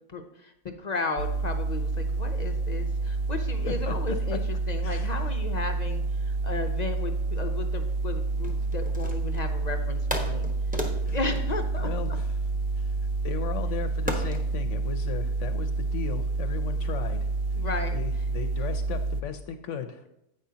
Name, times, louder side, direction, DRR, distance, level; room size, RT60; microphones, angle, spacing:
voice 1, 0.1-4.4 4.7-10.4 10.7-10.8 11.1-11.9 17.5-18.0, left 3 dB, 50° left, 5 dB, 0.5 m, -34 dB
sound 1, 1.2-19.2, right 3 dB, 75° right, 1.0 m, -28 dB
voice 2, 3.7-4.4 4.8-5.3 11.0-11.2 11.8-12.3 12.8-13.0 13.2-17.3 17.9-20.0, left 7 dB, 65° left, 9 dB, 0.9 m, -36 dB
sound 2, 8.4-9.5 10.1-12.6 14.1-14.5, left 1 dB, 5° right, 0.9 m, -35 dB
10.0 x 8.5 x 2.8 m, 0.84 s
omnidirectional pair, 1.6 m